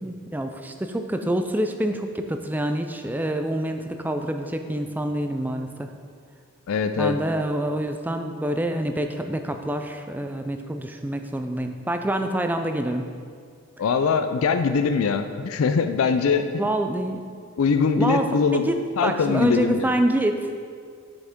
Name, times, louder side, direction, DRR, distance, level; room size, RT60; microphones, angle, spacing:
voice 1, 0.0-5.9 7.0-13.1 16.6-17.2 18.0-18.3 18.5-20.5, right 1 dB, 10° right, 6 dB, 0.3 m, -26 dB
voice 2, 6.7-7.2 13.8-16.5 17.6-18.7 19.0-19.9, left 5 dB, 70° left, 8 dB, 0.4 m, -22 dB
7.7 x 6.3 x 3.6 m, 2.1 s
head